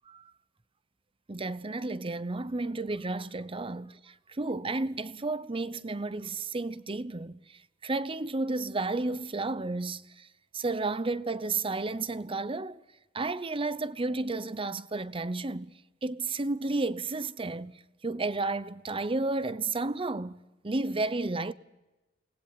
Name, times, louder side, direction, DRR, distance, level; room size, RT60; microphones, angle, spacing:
voice 1, 1.3-10.3 10.5-12.8 13.1-15.7 16.0-20.4 20.6-21.5, right 3 dB, 30° right, 0.7 m, -32 dB
29.0 x 19.5 x 5.8 m
head